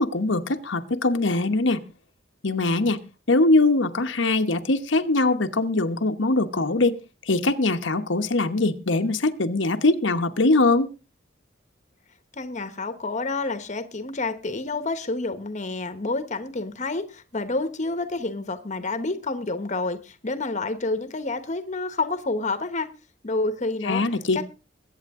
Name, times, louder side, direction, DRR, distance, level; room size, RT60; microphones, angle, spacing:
voice 1, 0.0-1.8 2.4-3.0 3.3-7.0 7.3-10.9 23.8-24.4, left 2 dB, 75° left, 7 dB, 1.1 m, -22 dB
voice 2, 12.4-22.9 23.2-24.0 24.3-24.4, left 3 dB, 40° left, 11 dB, 1.2 m, -29 dB
22.0 x 8.8 x 3.7 m, 0.31 s
head